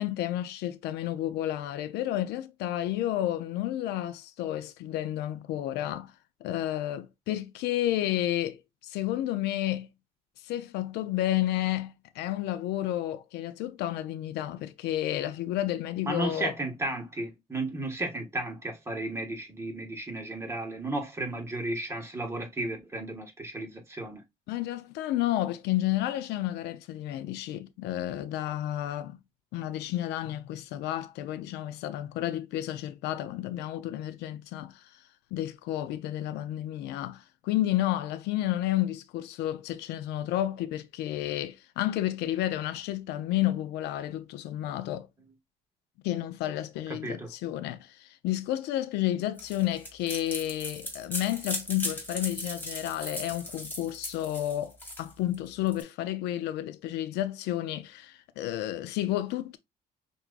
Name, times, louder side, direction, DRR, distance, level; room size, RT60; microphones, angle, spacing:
voice 1, 0.0-6.1 6.4-9.9 10.4-16.5 24.5-29.2 29.5-34.8 35.3-45.1 46.0-54.7 55.0-59.6, left 13 dB, 85° left, 0.5 m, -31 dB
voice 2, 16.0-24.2 46.9-47.3, right 2 dB, 15° right, 1.5 m, -34 dB
sound 1, 49.4-55.8, left 1 dB, 10° left, 1.8 m, -37 dB
5.9 x 2.6 x 2.4 m
cardioid pair, 110°, 17 cm